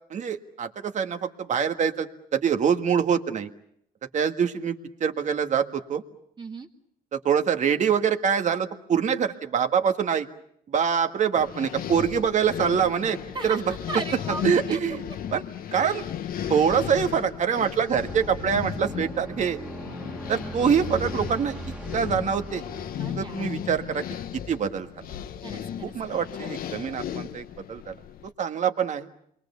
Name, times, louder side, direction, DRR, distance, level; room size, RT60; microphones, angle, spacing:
voice 1, 0.1-3.5 4.1-6.0 7.1-10.3 10.7-13.2 13.4-13.6 14.4-15.0 15.3-15.4 15.7-16.0 16.5-19.6 20.3-21.6 21.9-22.6 23.2-24.0 24.5-25.1 25.8-27.9 28.4-29.1, right 7 dB, 45° right, 7 dB, 1.8 m, -25 dB
voice 2, 6.4-6.7 13.3-13.6 13.9-14.8 22.9-23.4 25.4-25.9 26.4-26.6, right 3 dB, 25° right, 1 dB, 2.0 m, -36 dB
sound 1, 11.4-28.3, left 10 dB, 60° left, 1.1 m, -35 dB
sound 2, 18.0-24.6, right 1 dB, 5° right, 1.9 m, -39 dB
28.5 x 23.0 x 7.0 m, 0.70 s
cardioid pair, 110°, 17 cm